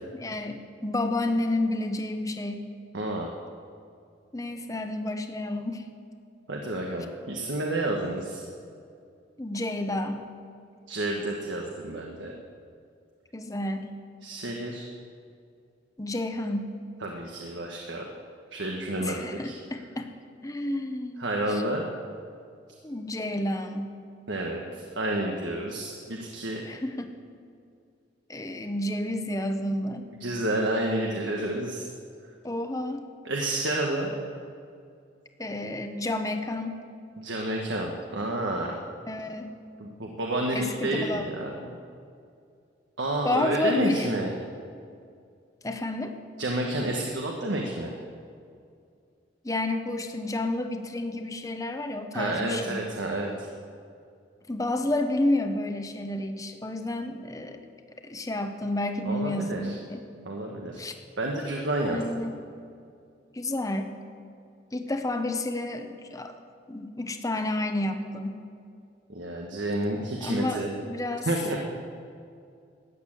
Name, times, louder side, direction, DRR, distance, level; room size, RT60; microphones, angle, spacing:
voice 1, 0.1-2.6 4.3-5.9 9.4-10.2 13.3-13.9 16.0-16.7 19.0-20.1 20.4-21.3 22.8-24.0 26.6-27.2 28.3-30.1 32.4-33.0 35.4-36.8 39.1-39.5 40.5-41.3 43.2-44.2 45.6-46.2 49.4-52.8 54.5-57.6 58.0-60.0 60.8-60.9 61.9-62.5 63.3-64.0 64.7-66.3 66.7-68.4 70.2-71.3, left 1 dB, 20° left, 6 dB, 0.9 m, -30 dB
voice 2, 2.9-3.3 6.5-8.4 10.9-12.3 14.2-14.8 17.0-18.0 18.5-19.5 21.2-21.8 24.3-26.6 30.2-31.9 33.2-34.1 37.2-38.8 39.8-41.8 43.0-44.3 46.4-47.9 52.1-53.5 59.0-59.8 60.2-60.8 61.2-62.0 69.1-70.7 71.2-71.6, right 1 dB, 85° right, 0 dB, 1.4 m, -30 dB
14.0 x 8.8 x 8.8 m, 2.4 s
head